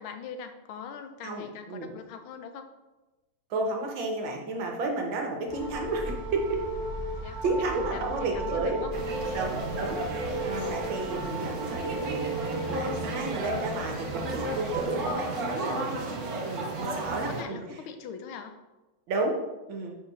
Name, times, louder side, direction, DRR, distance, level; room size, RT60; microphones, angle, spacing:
voice 1, 0.0-2.7 7.2-8.9 17.1-18.6, left 6 dB, 85° left, 8 dB, 1.5 m, -41 dB
voice 2, 1.2-1.9 3.5-6.4 7.4-8.8 9.3-12.3 12.6-15.9 16.4-17.6 19.1-19.4 19.7-20.0, right 3 dB, 70° right, 1 dB, 1.8 m, -32 dB
sound 1, 5.5-15.1, right 1 dB, 20° left, 0.8 m, -36 dB
sound 2, 8.9-17.4, right 2 dB, 55° right, 1.3 m, -33 dB
5.2 x 4.9 x 5.6 m, 1.1 s
omnidirectional pair, 2.3 m